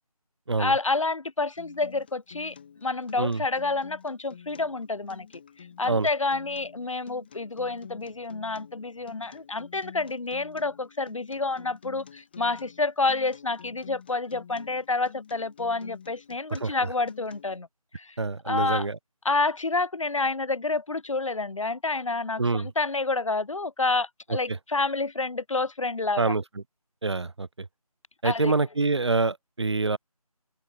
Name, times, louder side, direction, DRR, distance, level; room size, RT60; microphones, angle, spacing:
voice 1, 0.6-2.5 2.8-5.3 5.8-17.7 17.9-18.1 18.4-18.9 19.2-26.3 28.2-28.5, left 3 dB, 55° left, 1.4 m, -28 dB
Acoustic guitar, 1.6-17.6, left 7 dB, 15° left, 1.5 m, -49 dB
voice 2, 16.5-16.9 18.2-19.0 22.4-22.7 24.5-24.6 26.2-26.6 27.0-27.7 28.2-30.0, right 3 dB, 45° right, 0.6 m, -26 dB
open air
figure-of-eight pair, 165°, 20 cm